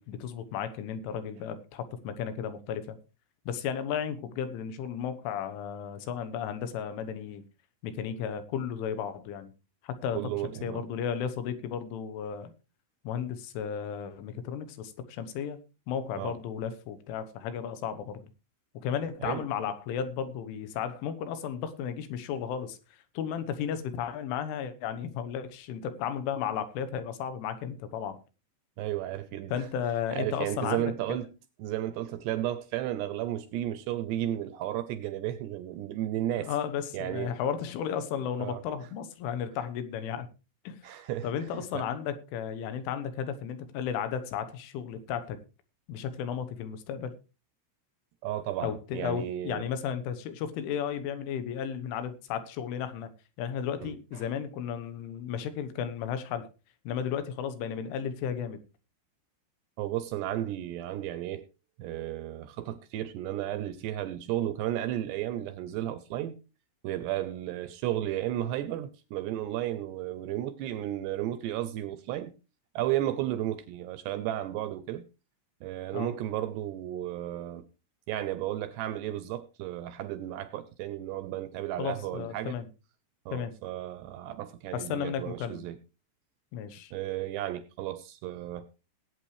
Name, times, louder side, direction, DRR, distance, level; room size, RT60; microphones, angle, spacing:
voice 1, 0.0-3.0 3.5-7.5 7.8-9.5 9.8-12.5 13.1-15.6 15.9-18.3 18.8-22.8 23.2-28.2 29.5-31.2 36.4-40.3 40.7-40.9 41.2-45.4 45.9-47.1 48.6-53.1 53.4-56.5 56.9-58.6 75.9-76.1 81.8-82.7 83.3-83.5 84.7-85.6 86.5-86.9, left 8 dB, 85° left, 3.6 m, -34 dB
voice 2, 10.1-10.8 16.2-16.4 19.2-19.5 28.8-29.5 30.1-31.3 31.6-36.5 36.9-37.4 38.4-38.6 40.8-41.9 48.2-49.6 53.8-54.2 59.8-61.4 61.8-66.4 66.8-72.3 72.8-75.1 75.6-77.7 78.1-82.6 83.3-85.8 86.9-88.7, right 13 dB, 80° right, 2.6 m, -33 dB
19.0 x 8.8 x 3.2 m
omnidirectional pair, 5.4 m